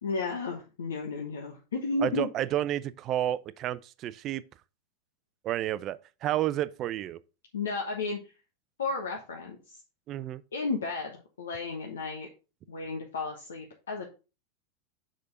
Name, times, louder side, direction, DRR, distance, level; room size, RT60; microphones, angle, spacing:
voice 1, 0.0-2.3 7.5-8.2 8.8-9.8 10.5-12.3 12.7-14.1, left 3 dB, 75° left, 1.1 m, -33 dB
voice 2, 2.0-4.4 5.4-7.2 10.1-10.4, right 13 dB, 40° right, 0.5 m, -30 dB
6.7 x 5.1 x 4.0 m
figure-of-eight pair, 90°, 0 cm